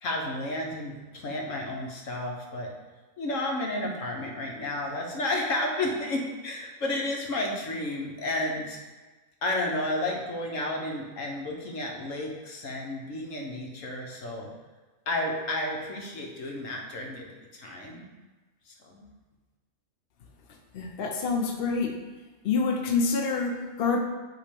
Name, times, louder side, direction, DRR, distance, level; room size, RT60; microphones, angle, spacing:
voice 1, 0.0-2.7 3.2-8.8 9.4-14.5 15.1-18.1 18.7-19.1, left 1 dB, 70° left, 1 dB, 1.4 m, -32 dB
voice 2, 20.7-22.0 22.4-24.0, left 4 dB, 50° left, 2 dB, 0.8 m, -27 dB
8.4 x 3.1 x 5.2 m, 1.3 s
omnidirectional pair, 1.4 m